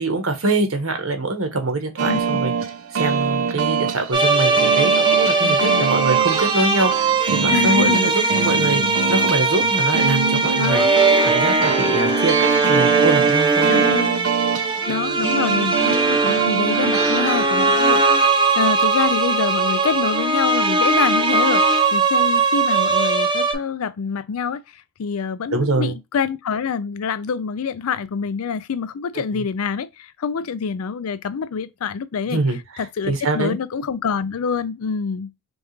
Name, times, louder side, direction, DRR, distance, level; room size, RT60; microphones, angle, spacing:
voice 1, 0.0-2.5 2.9-8.8 9.1-10.8 11.2-13.7 25.5-25.9 32.3-33.6, right 2 dB, 75° right, 1.1 m, -24 dB
sound 1, 2.0-17.5, right 6 dB, 90° right, 0.6 m, -25 dB
voice 2, 2.1-2.4 5.4-5.8 7.5-8.5 10.6-11.0 13.7-14.2 14.9-21.7 21.9-32.4 32.8-35.3, left 6 dB, 90° left, 0.4 m, -26 dB
sound 2, 4.1-23.5, right 3 dB, 20° right, 0.6 m, -19 dB
5.3 x 2.4 x 3.1 m
head